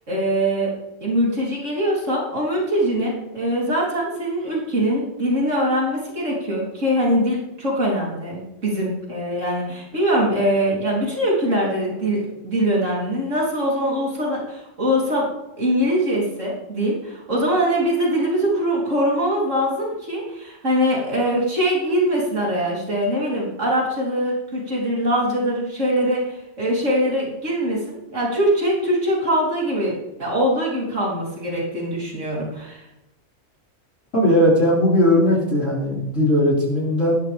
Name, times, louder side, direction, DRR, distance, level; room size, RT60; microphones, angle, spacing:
voice 1, 0.1-0.7 1.0-15.3 15.6-29.9 30.2-32.8, equal, 85° right, -4 dB, 4.1 m, -22 dB
voice 2, 34.1-37.1, left 1 dB, 90° left, -5 dB, 5.5 m, -18 dB
19.0 x 11.5 x 3.5 m, 0.93 s
omnidirectional pair, 1.3 m